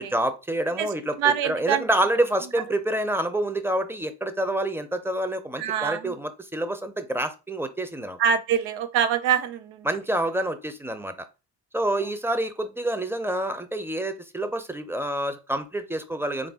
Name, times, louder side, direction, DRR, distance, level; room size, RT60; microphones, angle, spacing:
voice 1, 0.1-1.2 1.4-8.2 9.8-11.1 11.7-16.5, right 1 dB, 5° right, 0.7 m, -27 dB
voice 2, 0.8-1.8 5.6-6.1 8.2-9.9, right 8 dB, 85° right, 0.7 m, -25 dB
3.7 x 2.6 x 3.6 m
supercardioid pair, 60°, 44 cm